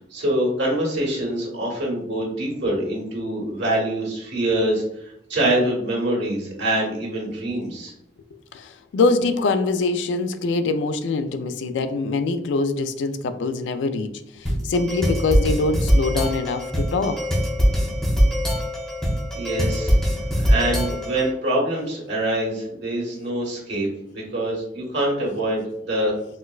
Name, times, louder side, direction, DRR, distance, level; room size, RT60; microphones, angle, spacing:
voice 1, 0.1-7.9 19.3-19.9 20.5-26.1, right 1 dB, 70° right, -2 dB, 1.4 m, -25 dB
voice 2, 8.5-17.2, left 3 dB, 80° left, 10 dB, 0.3 m, -24 dB
sound 1, 14.5-21.3, equal, 5° left, 0.7 m, -22 dB
4.3 x 2.1 x 2.3 m, 0.76 s
head